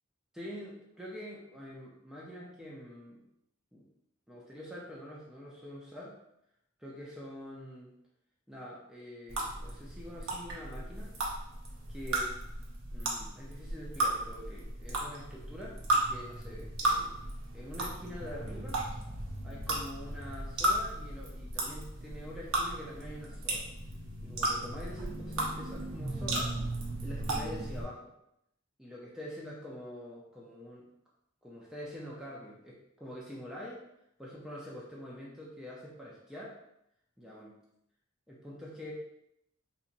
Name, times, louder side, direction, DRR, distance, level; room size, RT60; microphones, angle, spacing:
voice 1, 0.3-3.2 3.7-3.8 4.3-6.2 6.8-7.9 8.5-11.1 11.9-12.3 12.9-17.3 17.5-18.8 19.4-23.7 24.2-26.6 27.0-28.1 28.8-30.8 31.4-33.8 34.2-36.6 37.2-37.6 38.3-38.9, equal, 5° right, -5 dB, 0.5 m, -45 dB
sound 1, 9.3-27.8, right 1 dB, 70° right, 0.8 m, -35 dB
4.0 x 2.8 x 2.5 m, 0.80 s
head